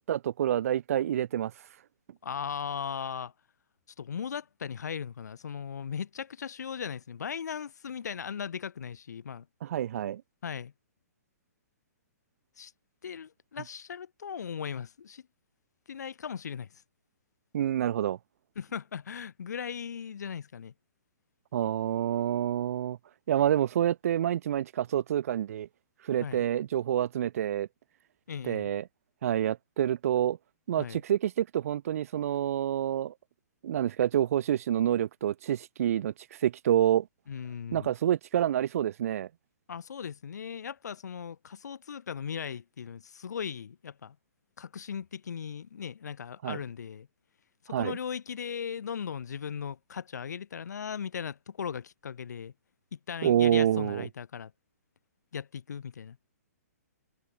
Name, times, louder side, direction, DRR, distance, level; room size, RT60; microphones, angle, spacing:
voice 1, 0.0-1.5 9.6-10.2 17.5-18.2 21.5-23.0 23.3-25.7 26.0-27.7 28.4-28.8 29.2-30.4 30.7-33.1 33.6-37.1 37.7-39.3 46.4-46.6 47.7-48.0 53.2-54.1, right 10 dB, 60° right, 0.5 m, -27 dB
voice 2, 2.2-3.3 4.0-9.5 10.4-10.7 12.6-12.7 13.0-15.2 15.9-16.8 18.6-20.7 26.2-26.4 28.3-28.7 30.8-31.0 37.3-37.9 39.7-44.2 44.6-47.1 47.6-52.5 52.9-54.5 55.3-56.2, left 7 dB, 90° left, 0.6 m, -38 dB
hypercardioid pair, 150°, 9 cm